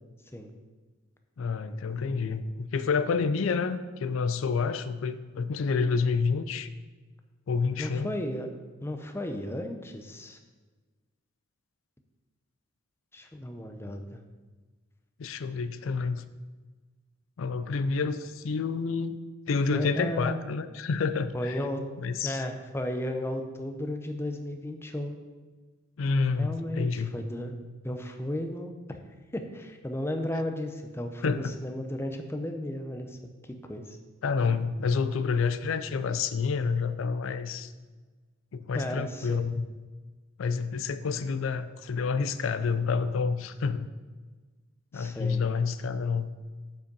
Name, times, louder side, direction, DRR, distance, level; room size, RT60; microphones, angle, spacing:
voice 1, 1.4-6.7 7.5-8.1 15.2-16.2 17.4-19.2 19.5-21.6 22.0-22.4 26.0-27.1 31.2-31.5 34.2-37.7 38.5-39.7 40.4-43.9 44.9-46.3, left 5 dB, 80° left, 12 dB, 0.4 m, -28 dB
voice 2, 7.8-8.5 8.8-10.4 13.1-14.2 19.7-20.4 21.3-21.8 22.2-25.2 26.4-27.5 27.8-29.0 29.3-33.2 33.4-34.0 38.7-39.5 44.9-45.4, left 1 dB, 10° left, 5 dB, 0.6 m, -34 dB
7.1 x 5.2 x 5.4 m, 1.3 s
head